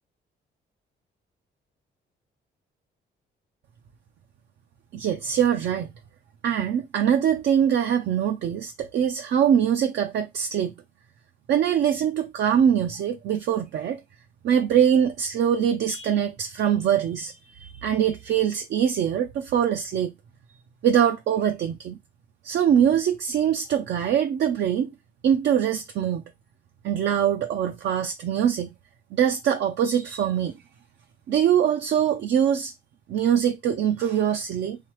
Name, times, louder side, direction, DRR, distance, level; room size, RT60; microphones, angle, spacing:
voice 1, 4.9-5.9 6.4-10.8 11.5-14.0 14.4-20.1 20.8-22.0 22.4-24.9 25.2-26.2 26.8-28.7 29.1-30.6 31.3-32.7 33.1-34.8, right 9 dB, 70° right, 0.5 m, -23 dB
3.3 x 3.3 x 3.1 m
cardioid pair, 90°, 19 cm